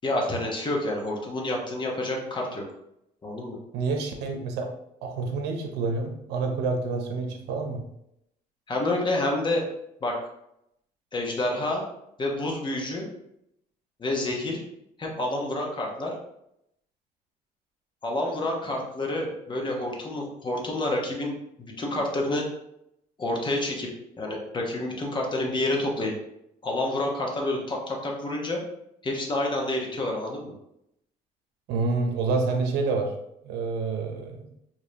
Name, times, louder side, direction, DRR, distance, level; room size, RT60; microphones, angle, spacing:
voice 1, 0.0-2.6 3.2-3.6 8.7-9.6 10.0-10.2 11.1-11.9 12.2-13.1 14.0-14.6 15.0-16.1 18.0-22.5 23.2-23.9 24.2-26.1 26.6-28.6 29.0-30.5, left 1 dB, 30° left, 0 dB, 1.1 m, -28 dB
voice 2, 3.7-4.7 5.0-7.8 31.7-33.1 33.4-34.4, right 4 dB, 80° right, 3 dB, 0.8 m, -28 dB
4.8 x 3.0 x 2.8 m, 0.79 s
cardioid pair, 110°, 17 cm